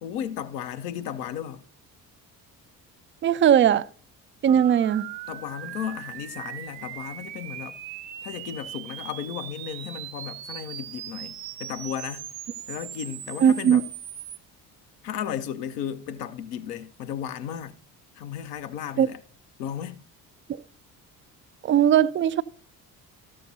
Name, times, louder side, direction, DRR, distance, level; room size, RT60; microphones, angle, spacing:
voice 1, 0.0-1.6 4.5-4.7 5.3-7.8 8.2-12.3 12.7-13.9 15.0-17.8 18.1-19.2 19.6-20.0, left 9 dB, 70° left, 0.9 m, -34 dB
voice 2, 3.2-3.8 4.4-5.0 13.4-13.8 19.0-19.1 21.6-22.4, right 9 dB, 25° right, 0.3 m, -19 dB
sound 1, 4.5-14.4, right 11 dB, 85° right, 0.6 m, -39 dB
13.5 x 6.7 x 2.7 m
figure-of-eight pair, 50°, 50 cm